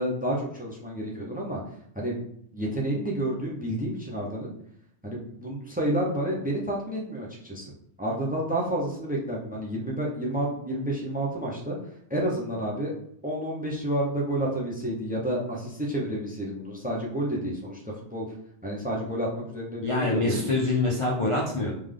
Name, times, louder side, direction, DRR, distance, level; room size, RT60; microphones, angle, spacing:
voice 1, 0.0-1.6 1.9-2.2 2.5-4.5 5.0-7.7 8.0-11.8 12.1-12.9 13.2-17.8 18.1-18.3 18.6-20.4, right 1 dB, 10° right, -2 dB, 0.6 m, -30 dB
voice 2, 19.8-21.7, left 2 dB, 40° left, -2 dB, 0.5 m, -25 dB
3.5 x 3.3 x 3.7 m, 0.70 s
omnidirectional pair, 1.3 m